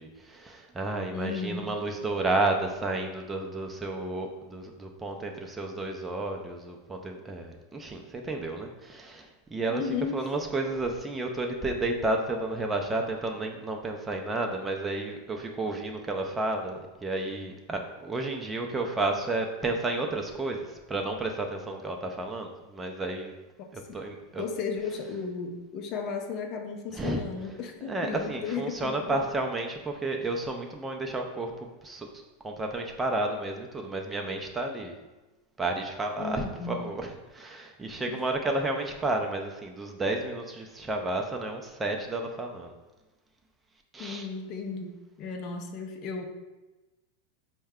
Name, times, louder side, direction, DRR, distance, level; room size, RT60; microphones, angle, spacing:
voice 1, 0.0-9.8 10.1-23.3 23.7-24.4 26.9-27.2 27.8-34.9 35.6-42.7 43.9-44.3, right 2 dB, 15° right, 2 dB, 0.5 m, -32 dB
voice 2, 1.1-1.7 9.7-10.2 23.9-24.0 24.4-29.2 36.2-36.7 38.1-38.2 44.0-46.2, left 5 dB, 45° left, 4 dB, 0.5 m, -34 dB
4.5 x 2.2 x 3.5 m, 1.1 s
hypercardioid pair, 115°, 0 cm